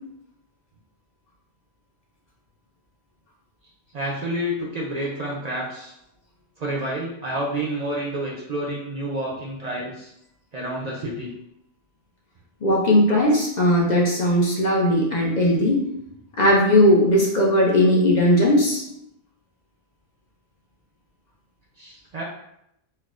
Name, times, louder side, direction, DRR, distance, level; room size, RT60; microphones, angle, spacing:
voice 1, 3.9-5.9 6.6-10.1 10.5-11.3 21.8-22.2, right 1 dB, 50° right, -3 dB, 0.5 m, -29 dB
voice 2, 12.6-15.8 16.4-18.8, left 1 dB, 50° left, -2 dB, 0.6 m, -18 dB
4.3 x 2.0 x 2.4 m, 0.78 s
omnidirectional pair, 1.1 m